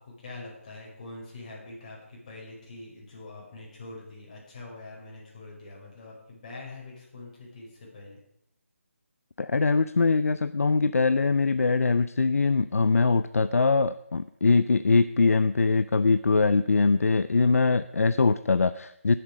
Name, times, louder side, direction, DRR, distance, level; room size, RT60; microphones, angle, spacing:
voice 1, 0.0-8.2, left 2 dB, 30° left, 4.9 m, -44 dB
voice 2, 9.4-19.2, left 4 dB, 85° left, 0.5 m, -22 dB
18.5 x 7.8 x 5.0 m
figure-of-eight pair, 170°, 8 cm